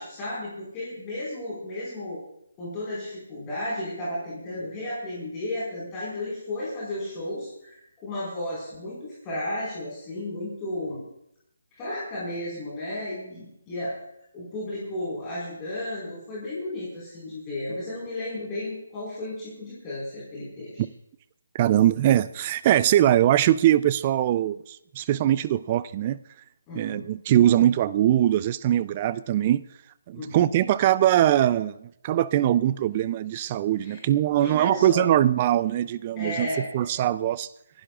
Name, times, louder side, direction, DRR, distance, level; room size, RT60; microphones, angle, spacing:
voice 1, 0.0-2.2 2.6-11.0 11.8-13.9 14.3-20.8 26.7-27.0 30.1-30.4 33.8-34.0 34.4-35.1 36.2-36.9, left 1 dB, 20° left, -8 dB, 4.9 m, -33 dB
voice 2, 21.5-26.2 26.8-29.6 30.1-36.5 36.7-37.5, right 12 dB, 25° right, 17 dB, 0.4 m, -22 dB
29.5 x 11.5 x 2.5 m, 0.79 s
hypercardioid pair, 160°, 0 cm